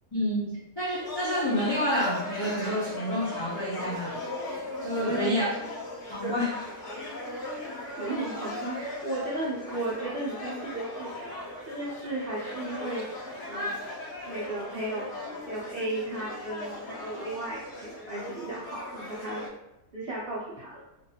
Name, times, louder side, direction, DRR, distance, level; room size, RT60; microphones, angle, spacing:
voice 1, 0.1-4.2 4.8-5.5 6.1-6.5, equal, 40° left, -9 dB, 0.3 m, -29 dB
sound 1, 0.9-19.5, left 2 dB, 55° left, 0.8 m, -38 dB
voice 2, 4.9-5.3 6.0-6.4 7.8-11.1 11.7-13.7 14.2-15.1 15.5-19.5 19.9-20.8, right 2 dB, 75° right, -6 dB, 0.5 m, -35 dB
2.6 x 2.3 x 2.7 m, 0.91 s
omnidirectional pair, 1.6 m